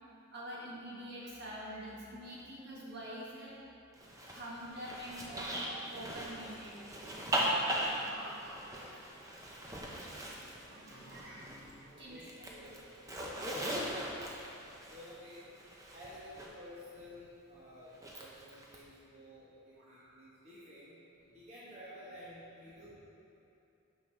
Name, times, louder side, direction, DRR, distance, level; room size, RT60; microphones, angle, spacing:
voice 1, 0.3-3.6 4.3-6.8 7.8-9.1 9.5-12.3 12.5-12.7 13.3-13.4 19.8-20.2 21.6-21.7, right 1 dB, 50° right, -6 dB, 1.6 m, -47 dB
Zipper (clothing), 4.0-11.8 12.1-16.5 17.9-18.8, right 1 dB, 15° right, 0.7 m, -39 dB
voice 2, 10.2-10.7 11.9-12.8 14.9-15.4 15.9-21.0 21.3-22.9, left 1 dB, 30° right, -9 dB, 1.2 m, -52 dB
9.6 x 6.2 x 3.3 m, 2.7 s
head